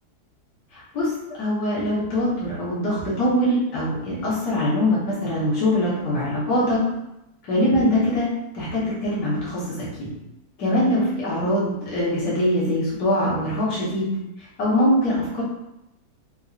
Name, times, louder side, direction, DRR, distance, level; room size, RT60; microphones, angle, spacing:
voice 1, 0.7-1.1 1.4-6.8 7.5-8.3 8.5-10.1 10.6-14.1 14.6-15.4, left 1 dB, 65° left, -8 dB, 1.5 m, -23 dB
5.1 x 2.1 x 2.4 m, 0.88 s
omnidirectional pair, 1.8 m